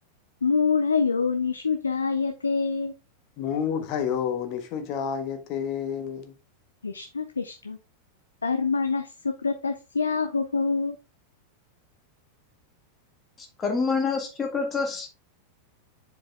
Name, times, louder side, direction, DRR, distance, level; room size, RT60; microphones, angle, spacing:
voice 1, 0.4-2.9 6.8-7.8 8.4-11.0, left 5 dB, 75° left, 0.6 m, -26 dB
voice 2, 3.4-6.3, left 7 dB, 40° left, 1.4 m, -29 dB
voice 3, 13.6-15.1, left 4 dB, 20° left, 1.8 m, -26 dB
7.6 x 4.7 x 3.4 m
figure-of-eight pair, 90°, 0 cm